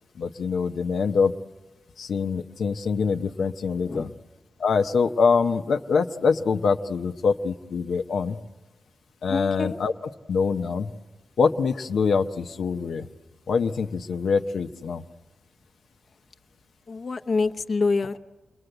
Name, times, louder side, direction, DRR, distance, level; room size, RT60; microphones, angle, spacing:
voice 1, 0.2-1.3 2.0-4.1 4.6-8.4 9.2-9.9 10.3-10.9 11.4-13.0 13.5-15.0, left 5 dB, 80° left, 5 dB, 0.8 m, -24 dB
voice 2, 3.8-4.2 9.3-9.8 16.9-18.2, left 4 dB, 45° left, 6 dB, 0.8 m, -26 dB
29.5 x 22.0 x 7.9 m, 1.2 s
wide cardioid pair, 110°, 0 cm